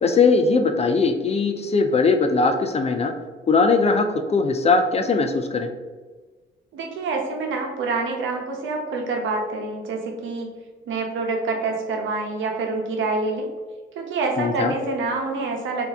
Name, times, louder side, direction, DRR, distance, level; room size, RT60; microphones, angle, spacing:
voice 1, 0.0-3.1 3.5-5.7 14.4-14.7, left 4 dB, 30° left, 6 dB, 0.4 m, -20 dB
voice 2, 6.7-10.6 10.9-13.5 13.9-15.9, right 3 dB, 75° right, 1 dB, 0.9 m, -26 dB
4.1 x 2.8 x 3.5 m, 1.4 s
cardioid pair, 90°, 20 cm